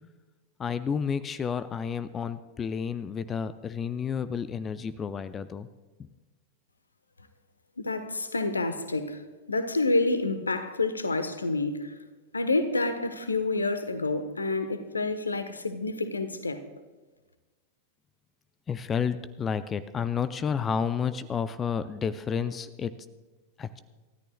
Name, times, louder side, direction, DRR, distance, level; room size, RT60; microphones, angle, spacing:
voice 1, 0.6-5.7 6.0-6.1 18.7-22.9 23.6-23.8, left 7 dB, 20° left, 0.5 m, -31 dB
voice 2, 7.8-12.0 12.3-16.6, left 2 dB, 80° left, 1.0 m, -28 dB
28.5 x 13.5 x 2.3 m
figure-of-eight pair, 90°, 0 cm